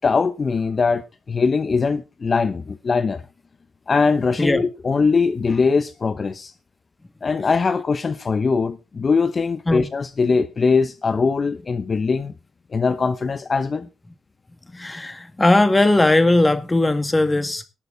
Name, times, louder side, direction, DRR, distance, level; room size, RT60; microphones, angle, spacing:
voice 1, 0.0-1.0 1.3-3.2 3.9-6.5 7.2-12.3 12.7-13.9, left 4 dB, 45° left, 0.9 m, -21 dB
voice 2, 14.7-17.6, left 2 dB, 20° left, 2.1 m, -18 dB
19.0 x 6.9 x 4.0 m
cardioid pair, 70°, 0 cm